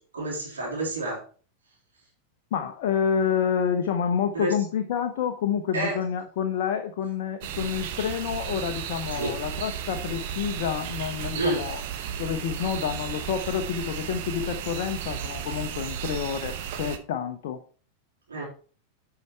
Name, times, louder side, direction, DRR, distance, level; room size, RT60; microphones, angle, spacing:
voice 1, 0.1-1.2 4.3-4.5 5.7-6.0 9.1-9.3 11.4-11.6 18.3-18.5, right 2 dB, 70° right, -4 dB, 3.9 m, -28 dB
voice 2, 2.5-11.8 12.2-17.6, left 8 dB, 50° left, 6 dB, 0.9 m, -28 dB
sound 1, 7.4-17.0, right 9 dB, 50° right, 1.1 m, -34 dB
9.6 x 5.9 x 4.6 m, 0.40 s
figure-of-eight pair, 90°, 0 cm